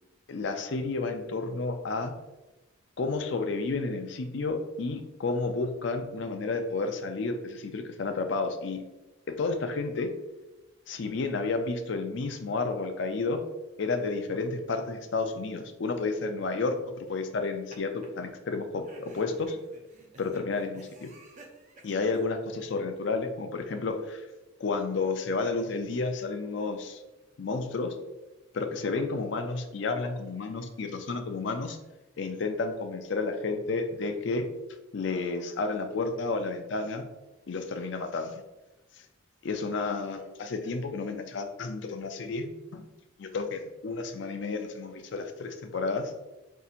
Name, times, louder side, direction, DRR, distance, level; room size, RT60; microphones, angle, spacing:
voice 1, 0.3-2.1 3.0-8.8 9.4-10.1 10.9-13.4 13.8-19.6 20.2-21.1 21.8-24.3 24.6-27.0 27.4-27.9 28.5-31.8 32.2-34.5 34.9-37.1 37.5-38.4 39.4-42.9 43.2-46.1, left 3 dB, 60° left, 7 dB, 0.4 m, -31 dB
sound 1, 17.2-17.8 18.0-18.1 18.8-22.2, right 2 dB, 35° right, 0.5 m, -52 dB
5.5 x 2.7 x 2.4 m, 1.1 s
head